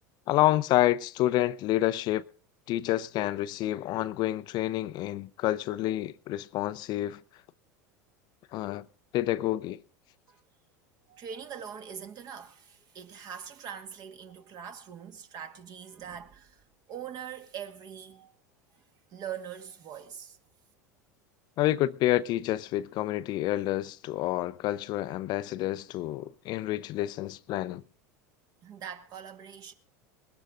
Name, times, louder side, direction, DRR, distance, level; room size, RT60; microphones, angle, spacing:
voice 1, 0.3-2.2 2.7-7.2 8.5-8.9 9.1-9.8 21.6-27.8, left 15 dB, 50° left, 0.6 m, -28 dB
voice 2, 11.1-18.4 19.1-20.4 28.6-29.7, right 8 dB, 45° right, 2.0 m, -42 dB
21.0 x 13.0 x 3.8 m
hypercardioid pair, 85°, 9 cm